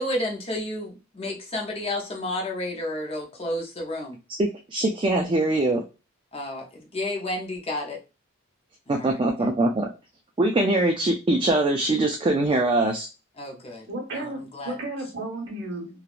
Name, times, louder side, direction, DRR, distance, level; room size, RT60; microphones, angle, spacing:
voice 1, 0.0-4.2 6.3-6.7 6.9-8.0 8.9-9.5 13.4-14.7, left 1 dB, 30° left, 0 dB, 0.6 m, -31 dB
voice 2, 4.3-5.8 8.9-9.9 10.4-13.1, right 2 dB, 25° right, 1 dB, 0.3 m, -22 dB
voice 3, 13.9-15.9, right 2 dB, 55° right, 1 dB, 1.1 m, -33 dB
3.3 x 2.3 x 2.4 m, 0.29 s
head